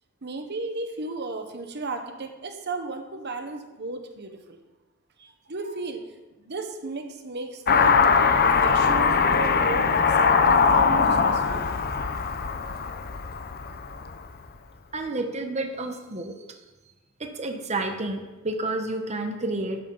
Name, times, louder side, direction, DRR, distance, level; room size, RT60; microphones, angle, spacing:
voice 1, 0.2-4.6 5.2-6.1 6.4-8.0 8.4-11.7, right 3 dB, 50° right, 6 dB, 1.2 m, -34 dB
Car passing by / Accelerating revving vroom, 7.7-14.3, left 5 dB, 45° left, 0.7 m, -21 dB
voice 2, 14.9-16.3 17.2-19.8, right 2 dB, 30° right, 4 dB, 1.1 m, -30 dB
12.0 x 10.0 x 4.0 m, 1.1 s
head